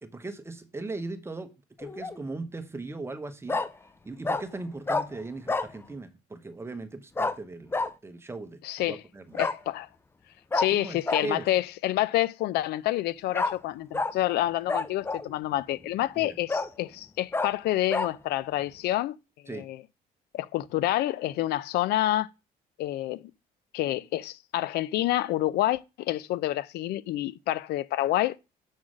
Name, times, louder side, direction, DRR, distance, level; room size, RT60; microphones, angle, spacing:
voice 1, 0.0-1.5 1.8-3.6 4.0-7.7 8.0-9.4 10.7-11.4 16.2-16.4 19.5-19.6, right 3 dB, 15° right, 0.9 m, -38 dB
Bark, 1.8-2.2 3.5-3.7 4.2-4.4 4.9-5.1 5.5-5.7 7.2-7.3 7.7-7.9 9.3-9.6 10.5-10.7 11.1-11.2 13.3-13.5 13.9-14.1 14.7-15.3 15.8-15.9 16.5-16.7 17.3-17.5 17.9-18.1, left 3 dB, 15° left, 0.5 m, -28 dB
voice 2, 8.6-9.0 9.4-9.9 10.5-19.2 19.4-19.8 20.3-22.3 22.8-23.3 23.7-28.4, left 14 dB, 75° left, 0.4 m, -28 dB
6.3 x 3.8 x 6.2 m
cardioid pair, 110°, 17 cm